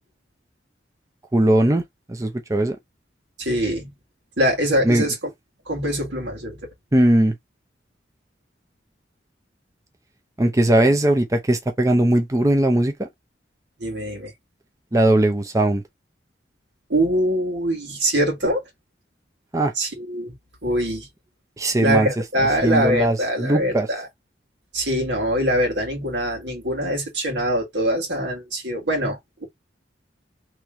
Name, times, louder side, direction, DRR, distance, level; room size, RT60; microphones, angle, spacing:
voice 1, 1.3-1.8 2.1-2.8 4.8-5.0 6.9-7.3 10.4-13.1 14.9-15.8 19.5-19.7 21.6-22.1 22.6-23.9, right 1 dB, 20° right, 0.6 m, -19 dB
voice 2, 3.4-3.9 4.4-5.2 5.7-6.7 13.8-14.3 16.9-18.7 19.8-20.3 20.6-21.1 21.8-24.1 24.7-29.5, equal, 85° right, 1.9 m, -23 dB
3.1 x 3.0 x 3.6 m
head